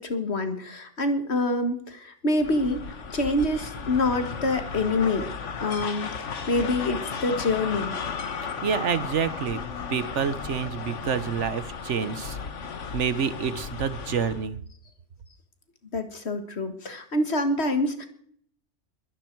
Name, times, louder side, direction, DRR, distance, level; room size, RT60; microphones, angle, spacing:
voice 1, 0.0-5.3 5.6-8.0 15.9-18.1, left 2 dB, 60° left, 8 dB, 2.0 m, -26 dB
sound 1, 2.4-14.5, left 5 dB, 75° left, 1.6 m, -35 dB
voice 2, 8.6-9.6 9.9-12.4 12.9-14.6, right 7 dB, 75° right, 14 dB, 1.3 m, -28 dB
22.0 x 11.0 x 4.6 m, 0.62 s
omnidirectional pair, 1.2 m